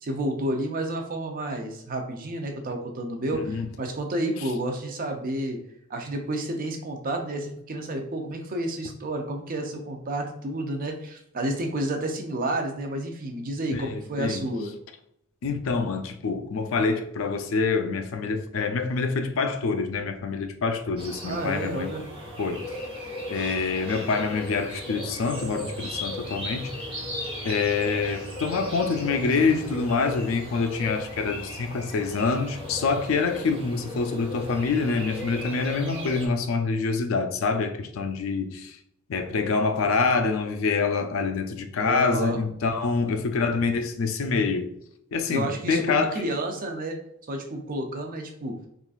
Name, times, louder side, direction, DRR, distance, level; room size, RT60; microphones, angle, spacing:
voice 1, 0.0-5.6 5.9-14.7 21.2-22.1 41.8-42.4 45.3-47.0 47.3-48.6, right 1 dB, 45° right, 0.5 m, -30 dB
voice 2, 13.7-14.4 15.4-21.9 22.4-22.7 23.3-26.7 27.4-38.8 39.1-44.7 45.1-46.2, left 4 dB, 75° left, 0.4 m, -26 dB
sound 1, 21.0-36.3, left 1 dB, 25° right, 0.9 m, -37 dB
3.8 x 2.4 x 2.4 m
head